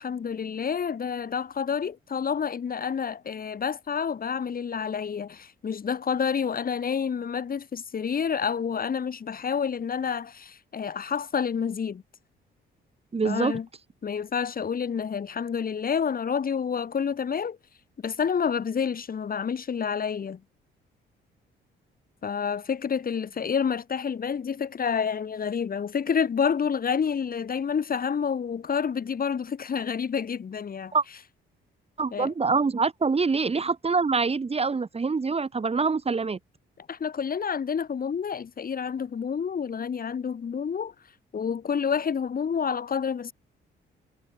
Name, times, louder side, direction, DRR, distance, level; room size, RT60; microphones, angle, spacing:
voice 1, 0.0-12.0 13.2-13.7 14.0-17.6 18.0-20.4 22.2-30.9 32.1-32.3 36.9-40.9 41.3-43.3, left 7 dB, 45° left, 6.7 m, -29 dB
voice 2, 13.1-13.5 30.9-31.0 32.0-36.4, right 4 dB, 30° right, 3.6 m, -25 dB
cardioid pair, 90°, 20 cm